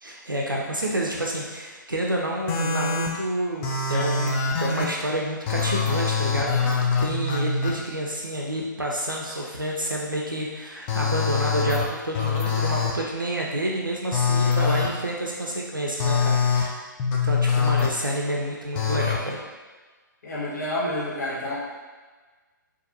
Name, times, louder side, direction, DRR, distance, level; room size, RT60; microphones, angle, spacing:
voice 1, 0.0-6.6 7.0-16.7 17.2-19.4, right 1 dB, 90° right, -2 dB, 0.5 m, -29 dB
sound 1, 2.5-3.1 3.6-4.9 5.5-7.7 10.9-11.8 12.2-12.9 14.1-14.9 16.0-16.6 17.0-17.9 18.8-19.2, left 5 dB, 15° left, 0.3 m, -23 dB
voice 2, 20.2-21.5, left 1 dB, 60° left, -7 dB, 1.3 m, -29 dB
4.1 x 2.5 x 2.6 m, 1.4 s
figure-of-eight pair, 125°, 11 cm